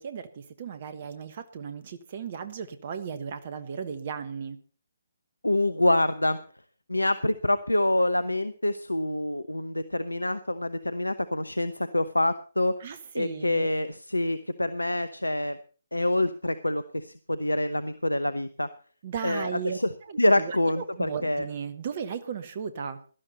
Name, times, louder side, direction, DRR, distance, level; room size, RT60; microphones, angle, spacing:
voice 1, 0.0-4.6 12.8-13.7 19.0-19.8 20.1-23.0, right 6 dB, 40° right, 10 dB, 1.3 m, -36 dB
voice 2, 5.4-6.4 6.9-12.7 13.1-15.6 15.9-18.7 19.2-19.9 20.2-21.5, left 1 dB, 85° left, 14 dB, 0.9 m, -26 dB
17.5 x 12.5 x 4.2 m, 0.39 s
figure-of-eight pair, 140°, 0 cm